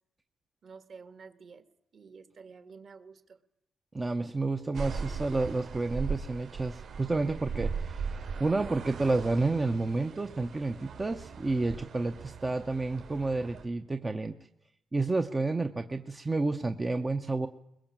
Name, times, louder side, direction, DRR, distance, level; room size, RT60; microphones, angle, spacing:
voice 1, 0.6-1.7 1.9-3.4, right 5 dB, 45° right, 11 dB, 1.7 m, -50 dB
voice 2, 3.9-8.1 8.4-14.3 14.9-17.5, right 3 dB, 15° right, 6 dB, 0.8 m, -30 dB
sound 1, 4.7-13.7, right 5 dB, 60° right, 3.7 m, -39 dB
22.0 x 22.0 x 7.4 m, 0.82 s
cardioid pair, 145°, 0 cm